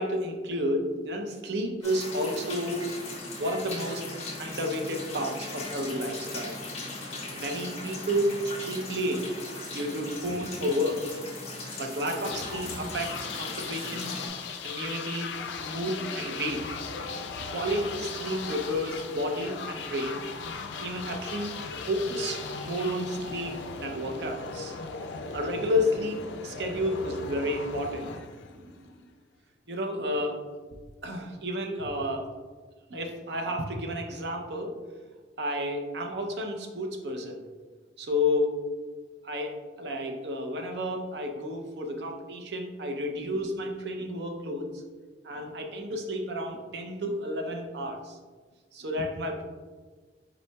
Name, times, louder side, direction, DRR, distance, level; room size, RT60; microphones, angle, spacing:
voice 1, 0.0-2.9 3.4-4.1 4.4-6.6 7.3-9.3 9.7-11.0 11.8-14.2 14.6-15.3 15.6-16.7 17.5-20.2 20.5-21.5 21.9-24.8 25.3-28.1 28.4-29.0 29.7-30.4 31.0-32.3 32.9-34.7 35.4-37.4 38.0-38.6 39.2-44.8 45.2-48.2 48.7-49.5, equal, 70° right, 3 dB, 0.6 m, -31 dB
sound 1, 1.8-14.3, left 2 dB, 35° left, 1.2 m, -39 dB
sound 2, 12.2-29.0, left 4 dB, 85° left, 0.4 m, -38 dB
5.4 x 4.1 x 2.3 m, 1.4 s
head